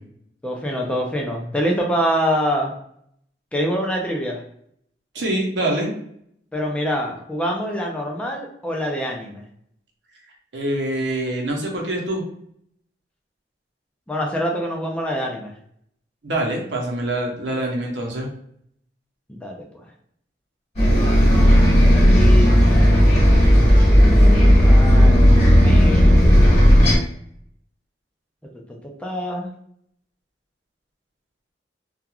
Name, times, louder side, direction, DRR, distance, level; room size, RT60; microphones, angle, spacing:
voice 1, 0.4-2.7 3.5-4.4 6.5-9.4 14.1-15.5 19.3-19.6 21.3-22.7 24.6-26.2 28.4-28.6 29.0-29.5, equal, 5° left, -1 dB, 0.4 m, -25 dB
voice 2, 5.1-5.9 10.5-12.2 16.2-18.3, right 1 dB, 75° right, 0 dB, 0.8 m, -25 dB
Bus, 20.8-27.0, equal, 40° left, 1.4 m, -13 dB
3.0 x 2.3 x 2.3 m, 0.70 s
head